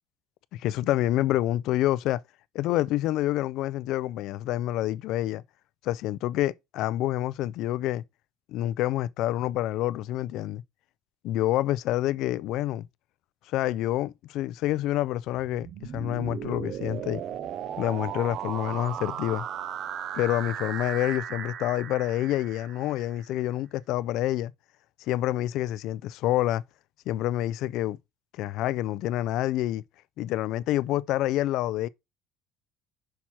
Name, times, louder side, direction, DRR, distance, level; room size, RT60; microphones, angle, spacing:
voice 1, 0.5-2.2 2.5-5.4 5.8-8.0 8.5-10.6 11.2-12.8 13.5-17.2 17.8-19.4 20.1-24.5 25.1-26.6 27.1-28.0 28.3-29.8 30.2-31.9, left 14 dB, 55° left, 0.3 m, -27 dB
sound 1, 15.3-23.3, right 9 dB, 40° right, 0.5 m, -36 dB
6.1 x 5.8 x 4.3 m
cardioid pair, 180°, 0 cm